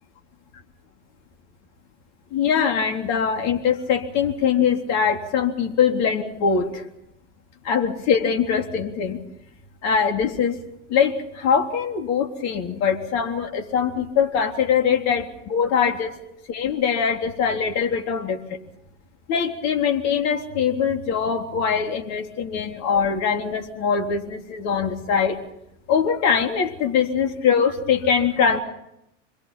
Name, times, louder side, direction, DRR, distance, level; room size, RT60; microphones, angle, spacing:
voice 1, 2.3-6.8 7.6-9.2 9.8-10.6 10.9-16.2 16.5-18.6 19.3-25.4 25.9-28.6, left 7 dB, 45° left, 5 dB, 3.6 m, -22 dB
27.0 x 22.5 x 5.9 m, 0.80 s
figure-of-eight pair, 85°, 37 cm